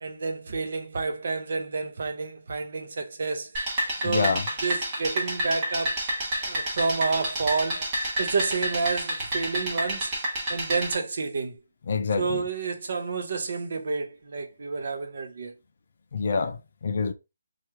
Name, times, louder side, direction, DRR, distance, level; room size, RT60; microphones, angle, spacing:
voice 1, 0.0-3.5 4.0-4.3 4.6-6.0 6.4-7.9 8.2-10.1 10.5-11.6 12.2-15.5, right 4 dB, 40° right, 0.7 m, -29 dB
sound 1, 3.5-10.9, right 1 dB, 15° right, 1.0 m, -29 dB
voice 2, 4.0-4.4 11.9-12.4 16.1-17.1, left 5 dB, 40° left, 0.4 m, -26 dB
3.1 x 2.4 x 4.3 m
hypercardioid pair, 175°, 0 cm